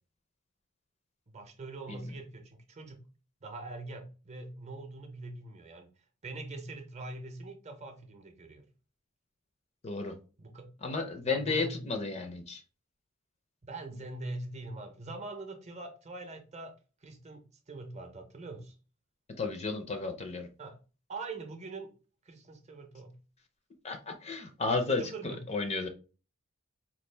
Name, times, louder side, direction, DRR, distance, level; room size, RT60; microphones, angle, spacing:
voice 1, 1.3-3.0 3.4-5.9 6.2-8.7 10.4-10.7 11.3-11.8 13.6-16.7 17.0-18.8 20.6-20.8 21.1-21.9 22.2-23.2 25.0-25.4, right 2 dB, 30° right, 5 dB, 0.7 m, -43 dB
voice 2, 9.8-10.1 10.8-12.6 19.4-20.5 23.8-25.9, left 3 dB, 30° left, 6 dB, 0.5 m, -33 dB
4.3 x 2.4 x 3.2 m, 0.34 s
head